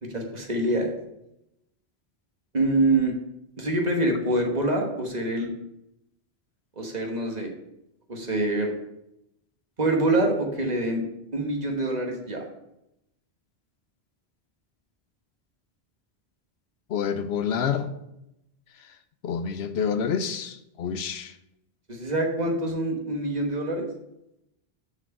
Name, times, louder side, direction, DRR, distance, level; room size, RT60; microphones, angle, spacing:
voice 1, 0.0-0.9 2.5-3.1 3.6-5.5 6.8-7.5 8.1-8.7 9.8-11.0 11.3-12.4 21.9-23.9, right 2 dB, 40° right, 1.3 m, -25 dB
voice 2, 16.9-17.9 19.2-21.3, left 7 dB, 80° left, 0.9 m, -28 dB
6.0 x 4.9 x 6.5 m
omnidirectional pair, 1.1 m